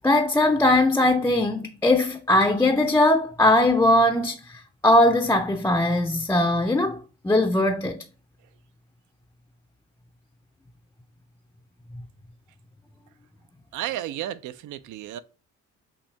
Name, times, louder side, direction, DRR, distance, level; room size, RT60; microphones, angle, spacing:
voice 1, 0.0-8.0 11.9-12.0, left 1 dB, 10° left, 0.4 m, -20 dB
voice 2, 13.7-15.2, right 12 dB, 75° right, 0.5 m, -32 dB
5.7 x 2.7 x 3.3 m
cardioid pair, 90°, 30 cm